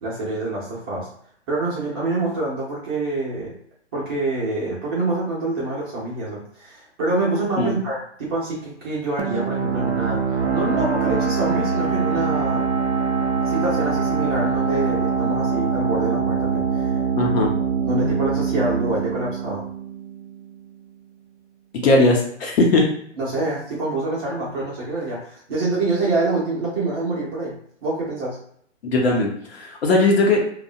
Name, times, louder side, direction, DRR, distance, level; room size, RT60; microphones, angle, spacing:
voice 1, 0.0-1.1 1.5-3.6 3.9-12.7 13.4-17.0 17.8-19.6 23.2-27.5 27.8-28.4, right 2 dB, 20° right, -6 dB, 0.5 m, -26 dB
sound 1, 9.2-20.6, right 6 dB, 70° right, 0.6 m, -23 dB
voice 2, 17.2-17.5 21.8-22.9 28.8-30.4, left 2 dB, 55° left, 0 dB, 0.8 m, -18 dB
2.3 x 2.0 x 2.7 m, 0.64 s
hypercardioid pair, 140°, 36 cm